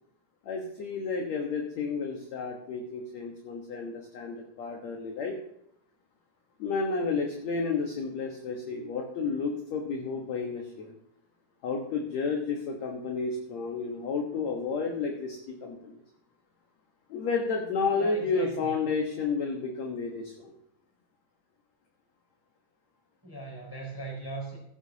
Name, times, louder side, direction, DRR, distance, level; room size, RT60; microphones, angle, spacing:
voice 1, 0.5-5.4 6.6-10.9 11.6-16.0 17.1-20.5, left 4 dB, 60° left, 1 dB, 2.1 m, -31 dB
voice 2, 17.9-18.7 23.2-24.6, right 2 dB, 5° left, -2 dB, 4.3 m, -39 dB
16.0 x 11.5 x 2.9 m, 0.75 s
omnidirectional pair, 4.2 m